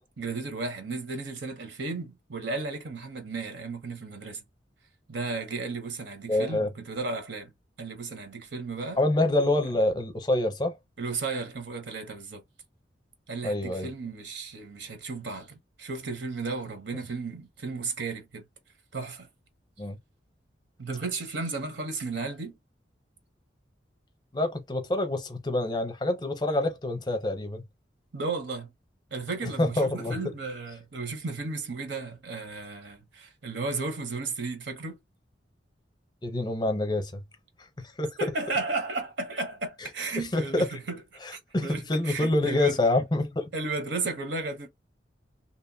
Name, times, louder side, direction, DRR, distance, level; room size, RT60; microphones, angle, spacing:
voice 1, 0.2-4.4 5.1-7.5 7.8-9.0 11.0-12.4 13.3-18.4 18.9-19.3 20.8-22.6 28.1-28.7 29.1-35.0 38.2-41.0 41.3-42.8 43.5-44.7, right 3 dB, 70° right, 0.7 m, -34 dB
voice 2, 6.3-6.7 9.0-10.8 13.4-13.9 19.8-20.0 24.3-27.6 29.6-30.2 36.2-37.2 37.8-38.3 40.3-40.8 41.2-43.5, left 1 dB, 20° left, 0.6 m, -26 dB
2.7 x 2.1 x 2.6 m
head